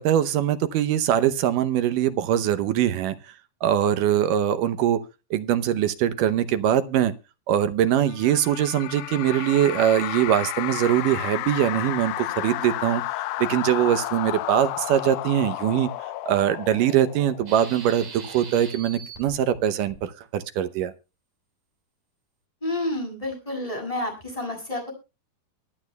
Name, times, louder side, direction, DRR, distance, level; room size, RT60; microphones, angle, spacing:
voice 1, 0.0-3.2 3.6-5.0 5.3-7.1 7.5-13.0 13.4-15.9 16.3-20.9, right 11 dB, 75° right, 12 dB, 2.1 m, -22 dB
sound 1, 8.1-17.7, left 16 dB, 80° left, 2.4 m, -32 dB
sound 2, 17.5-19.3 19.9-20.0, right 5 dB, 55° right, 5.0 m, -41 dB
voice 2, 22.6-24.9, left 1 dB, 10° left, 2 dB, 6.6 m, -29 dB
23.5 x 8.6 x 2.2 m, 0.29 s
omnidirectional pair, 4.4 m